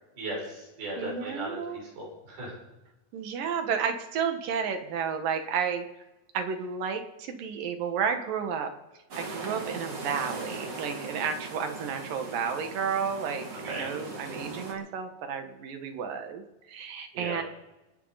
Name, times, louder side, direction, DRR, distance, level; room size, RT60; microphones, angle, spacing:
voice 1, 0.2-2.5 13.6-13.9 17.1-17.4, right 1 dB, 90° right, -4 dB, 8.9 m, -37 dB
voice 2, 1.0-1.8 3.1-5.8 6.3-8.7 9.2-16.4 16.7-17.4, right 6 dB, 60° right, 6 dB, 2.9 m, -32 dB
sound 1, 9.1-14.7, right 3 dB, 40° right, 3.1 m, -39 dB
29.0 x 9.8 x 4.1 m, 1.0 s
omnidirectional pair, 4.8 m